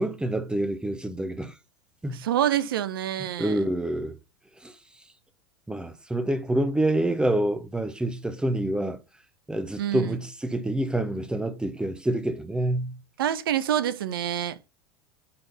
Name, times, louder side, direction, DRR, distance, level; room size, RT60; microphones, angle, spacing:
voice 1, 0.0-1.5 2.0-2.2 3.4-4.1 4.6-4.8 5.7-9.0 9.5-13.0, right 1 dB, 5° right, 1.0 m, -27 dB
voice 2, 2.1-3.6 9.8-10.1 13.2-14.6, right 10 dB, 75° right, 0.8 m, -27 dB
9.8 x 3.8 x 4.1 m
hypercardioid pair, 90°, 12 cm